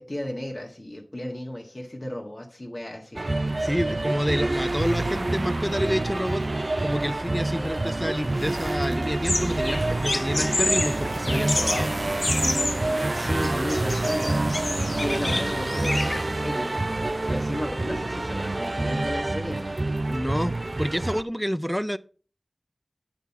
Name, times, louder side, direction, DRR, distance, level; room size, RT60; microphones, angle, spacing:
voice 1, 0.0-3.2 13.1-16.8 17.3-19.8, left 1 dB, 40° left, 1.4 m, -34 dB
sound 1, 3.1-21.2, right 2 dB, 55° right, 0.4 m, -27 dB
voice 2, 3.6-6.5 6.8-12.0 20.1-22.0, equal, ahead, 0.4 m, -28 dB
sound 2, 9.2-16.2, left 2 dB, 65° left, 0.5 m, -30 dB
9.2 x 5.6 x 4.5 m
wide cardioid pair, 45°, 0 cm